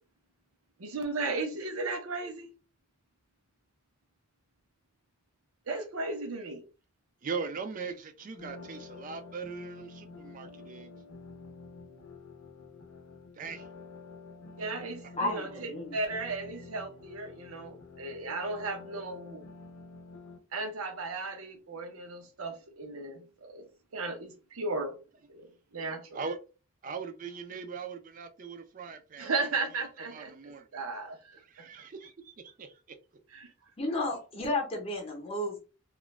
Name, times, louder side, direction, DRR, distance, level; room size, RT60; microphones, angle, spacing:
voice 1, 0.8-2.5 5.7-6.6 14.6-19.4 20.5-23.6 23.9-24.9 25.3-26.2 29.2-31.7 33.3-33.5, right 3 dB, 80° right, 0.7 m, -36 dB
voice 2, 7.2-10.9 13.3-13.7 15.0-15.1 26.1-26.4 26.8-29.5 30.1-30.7 31.4-33.0, right 5 dB, 40° right, 0.4 m, -40 dB
sound 1, 8.4-20.4, left 4 dB, 80° left, 0.6 m, -49 dB
voice 3, 15.2-16.0 33.8-35.6, left 2 dB, 25° left, 0.7 m, -32 dB
2.4 x 2.1 x 3.1 m
head